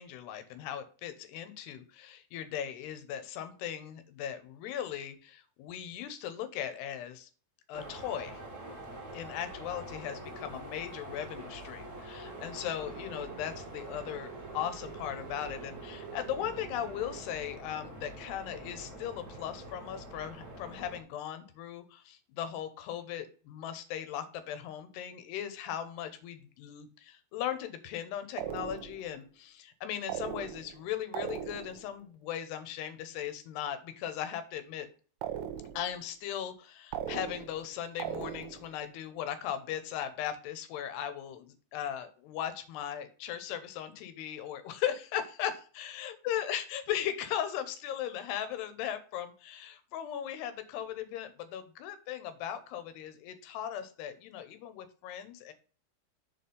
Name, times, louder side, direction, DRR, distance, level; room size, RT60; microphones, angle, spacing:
voice 1, 0.0-7.3 7.7-8.4 9.1-34.9 35.7-55.5, left 10 dB, 85° left, 10 dB, 3.0 m, -38 dB
sound 1, 7.7-21.0, right 1 dB, 50° right, 1.1 m, -46 dB
sound 2, 12.2-17.2, right 10 dB, 65° right, 2.6 m, -48 dB
sound 3, 28.4-29.1 30.1-30.8 31.1-31.9 35.2-35.9 36.9-37.7 38.0-38.7, right 10 dB, 90° right, 2.8 m, -38 dB
7.0 x 4.3 x 5.3 m, 0.38 s
omnidirectional pair, 4.7 m